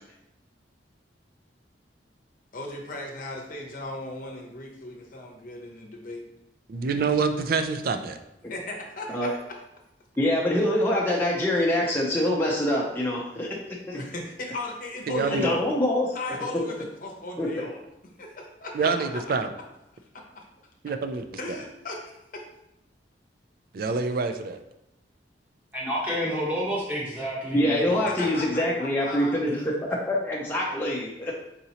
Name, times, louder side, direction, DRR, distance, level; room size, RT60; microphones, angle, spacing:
voice 1, 2.5-6.2 8.5-9.4 13.9-15.6 16.1-17.8 18.2-19.2 21.4-22.4 28.0-29.4, left 2 dB, 45° left, 0 dB, 0.7 m, -36 dB
voice 2, 6.7-8.2 15.1-15.5 18.7-19.5 20.8-21.6 23.7-24.6, right 4 dB, 55° right, 8 dB, 0.4 m, -27 dB
voice 3, 10.2-13.5 13.9-14.0 15.3-16.1 17.4-17.7 27.5-31.4, left 1 dB, 10° left, -3 dB, 0.5 m, -25 dB
voice 4, 25.7-28.0, equal, 10° right, -6 dB, 1.0 m, -29 dB
4.2 x 3.8 x 2.8 m, 0.86 s
head